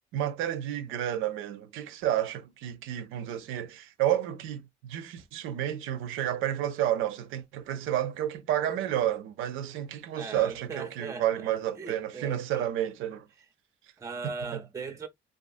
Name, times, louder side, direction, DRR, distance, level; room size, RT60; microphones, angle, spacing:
voice 1, 0.1-13.3 14.5-14.6, right 11 dB, 90° right, 0.5 m, -31 dB
voice 2, 10.2-12.6 14.0-15.1, right 4 dB, 15° right, 0.4 m, -39 dB
2.4 x 2.3 x 2.4 m
cardioid pair, 90°, 20 cm